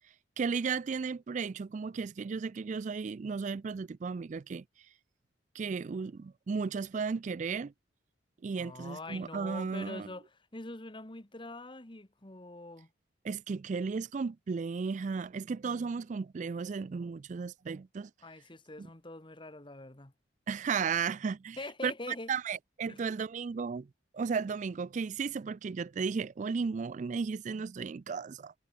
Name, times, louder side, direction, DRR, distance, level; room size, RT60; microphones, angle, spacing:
voice 1, 0.4-4.6 5.5-7.7 8.4-10.1 13.2-18.1 18.8-18.9 20.5-21.6 21.8-21.9 22.3-23.9 24.1-28.5, right 5 dB, 40° right, 0.3 m, -34 dB
voice 2, 8.6-12.9 18.2-20.1 21.6-22.3 22.9-23.0, left 2 dB, 25° left, 1.6 m, -44 dB
head